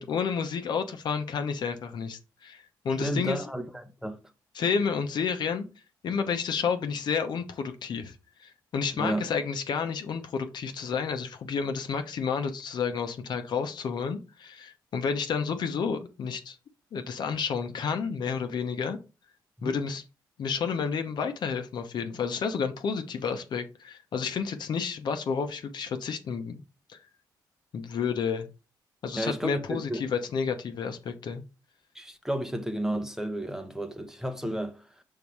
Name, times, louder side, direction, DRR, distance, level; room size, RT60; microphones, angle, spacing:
voice 1, 0.0-3.4 4.5-5.6 6.0-16.6 16.9-19.0 19.6-20.0 20.4-26.6 26.9-27.0 27.7-28.5 29.0-31.4, left 6 dB, 65° left, 1.0 m, -30 dB
voice 2, 3.0-4.2 9.0-9.3 19.6-19.7 29.2-30.0 31.9-34.8, right 1 dB, 5° right, 0.8 m, -32 dB
5.5 x 3.8 x 4.7 m
cardioid pair, 90°, 8 cm